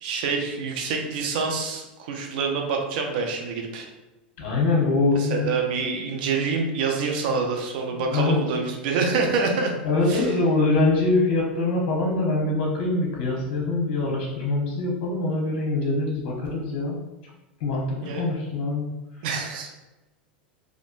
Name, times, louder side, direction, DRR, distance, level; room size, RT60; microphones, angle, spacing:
voice 1, 0.0-3.9 5.1-9.7 10.1-10.3 18.0-18.3 19.2-19.7, right 4 dB, 60° right, 2 dB, 0.7 m, -26 dB
voice 2, 4.4-5.5 7.9-8.4 9.8-17.0 17.6-18.9, left 2 dB, 55° left, -2 dB, 0.9 m, -24 dB
3.5 x 2.5 x 2.5 m, 1.0 s
hypercardioid pair, 90°, 5 cm